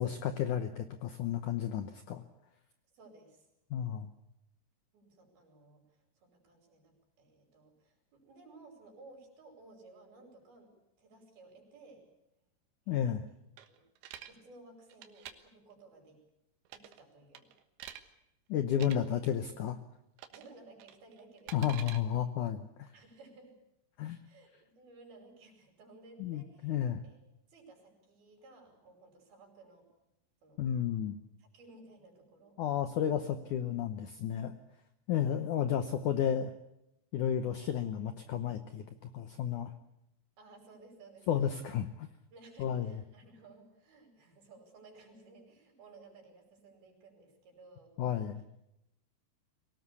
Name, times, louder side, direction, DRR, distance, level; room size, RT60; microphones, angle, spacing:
voice 1, 0.0-2.2 3.7-4.1 12.9-13.2 18.5-19.8 21.5-22.9 24.0-24.2 26.2-27.0 30.6-31.2 32.6-34.5 35.1-36.5 37.1-39.7 41.3-42.1 42.6-43.0 48.0-48.4, left 9 dB, 90° left, 9 dB, 1.7 m, -32 dB
voice 2, 2.9-3.5 4.9-12.0 12.9-13.0 13.7-13.8 14.2-16.2 16.7-17.5 18.9-19.2 20.3-21.7 22.9-23.5 24.2-26.8 27.0-27.2 27.5-29.9 30.4-30.6 31.4-32.6 35.2-35.4 40.4-41.6 42.3-47.9, right 3 dB, 60° right, 3 dB, 7.2 m, -57 dB
sound 1, 13.6-14.3 14.9-15.3 16.7-17.0 17.3-18.0 18.7-19.0 20.2-20.5 20.8-22.0, right 11 dB, 85° right, 3.6 m, -47 dB
23.5 x 18.5 x 8.3 m, 0.85 s
omnidirectional pair, 5.0 m